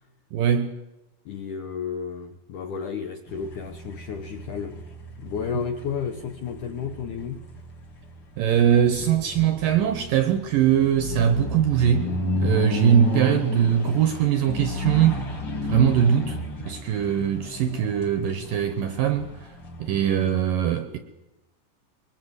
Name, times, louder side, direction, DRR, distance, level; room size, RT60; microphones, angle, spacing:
voice 1, 0.3-0.8 5.6-5.7 8.4-15.4 15.6-16.4 16.7-19.5 19.8-21.0, right 9 dB, 70° right, 2.1 m, -22 dB
voice 2, 1.3-4.9 5.2-7.4, left 7 dB, 75° left, 1.9 m, -32 dB
sound 1, 3.3-20.4, left 2 dB, 35° left, 2.0 m, -33 dB
23.0 x 21.0 x 8.1 m
omnidirectional pair, 5.1 m